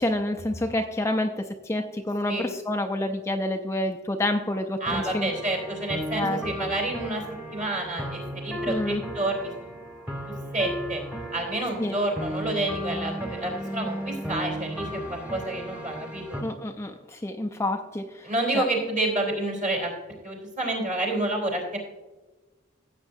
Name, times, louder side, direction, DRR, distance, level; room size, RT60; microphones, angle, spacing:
voice 1, 0.0-5.3 6.1-6.7 8.7-9.0 11.8-11.9 16.4-18.6, left 1 dB, 15° left, 5 dB, 0.4 m, -28 dB
sound 1, 4.8-16.4, equal, 5° right, 1.3 m, -35 dB
voice 2, 4.8-7.2 7.5-9.7 10.3-11.0 11.3-16.4 18.2-19.9 20.2-21.8, right 2 dB, 40° right, -1 dB, 3.5 m, -29 dB
15.5 x 8.2 x 2.6 m, 1.2 s
head